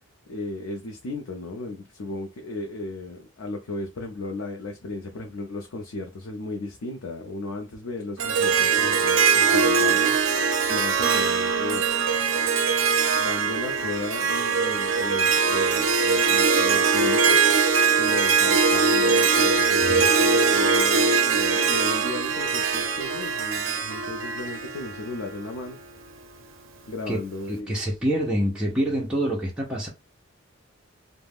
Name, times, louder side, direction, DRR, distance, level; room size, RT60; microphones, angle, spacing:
voice 1, 0.3-11.9 13.2-17.7 18.0-25.8 26.9-27.8, left 2 dB, 80° left, 0.5 m, -35 dB
Harp, 8.2-25.5, right 5 dB, 65° right, 0.5 m, -21 dB
voice 2, 27.5-29.9, right 1 dB, 5° right, 0.6 m, -26 dB
2.3 x 2.1 x 3.4 m
head